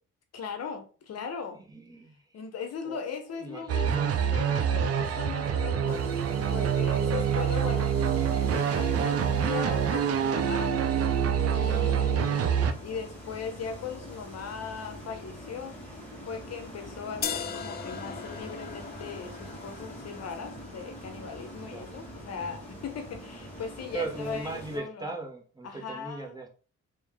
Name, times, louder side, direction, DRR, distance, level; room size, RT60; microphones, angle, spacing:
voice 1, 0.3-1.6 2.3-6.0 6.5-7.9 8.5-10.9 11.5-15.8 16.3-25.1 25.6-26.4, left 6 dB, 55° left, 0.8 m, -39 dB
voice 2, 1.7-2.2 2.8-3.0 3.4-4.6 21.7-22.0 23.9-26.5, right 2 dB, 15° right, 1.0 m, -38 dB
sound 1, 3.7-12.7, right 8 dB, 50° right, 0.6 m, -26 dB
sound 2, 5.9-24.8, equal, 5° left, 1.8 m, -44 dB
sound 3, 17.2-23.2, left 7 dB, 35° left, 0.4 m, -41 dB
3.1 x 3.1 x 3.6 m
cardioid pair, 90°, 30 cm